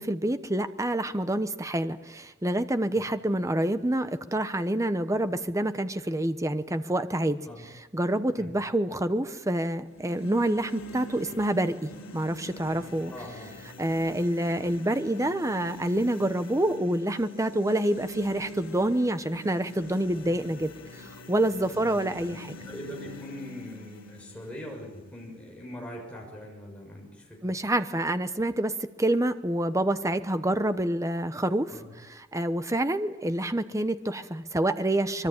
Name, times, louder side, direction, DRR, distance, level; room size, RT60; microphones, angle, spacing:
voice 1, 0.0-7.4 7.9-13.1 13.8-20.7 21.0-22.6 27.4-31.8 32.3-35.3, right 1 dB, 15° right, 10 dB, 1.0 m, -27 dB
sound 1, 9.8-25.8, left 1 dB, 75° left, 4.4 m, -45 dB
voice 2, 13.1-13.5 21.7-27.5 31.7-31.9, equal, 5° left, 0 dB, 6.6 m, -42 dB
24.0 x 23.5 x 8.9 m, 1.2 s
head